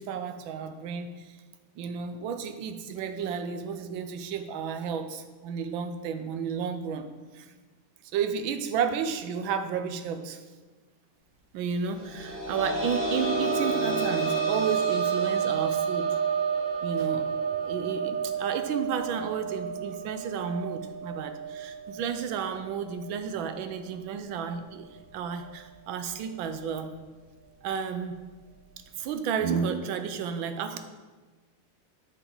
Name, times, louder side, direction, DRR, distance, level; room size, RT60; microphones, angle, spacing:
voice 1, 0.0-1.4 1.8-7.1 7.3-7.5 8.1-10.4 11.5-16.2 16.8-17.2 17.6-26.9 27.6-28.2 29.0-30.8, right 6 dB, 70° right, 8 dB, 1.3 m, -32 dB
sound 1, 12.0-23.4 23.8-23.9 25.4-25.5, right 5 dB, 35° right, 1.8 m, -30 dB
8.0 x 7.0 x 3.9 m, 1.3 s
omnidirectional pair, 2.4 m